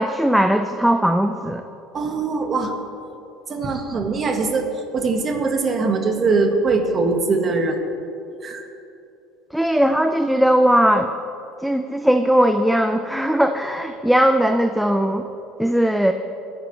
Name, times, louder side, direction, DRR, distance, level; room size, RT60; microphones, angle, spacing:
voice 1, 0.0-1.6 9.5-11.1 11.6-15.2 15.6-16.1, equal, ahead, 7 dB, 0.4 m, -18 dB
voice 2, 1.9-2.7 3.5-7.8 8.4-8.6, right 3 dB, 30° right, 4 dB, 1.6 m, -22 dB
21.5 x 10.5 x 3.3 m, 2.8 s
cardioid pair, 135°, 0 cm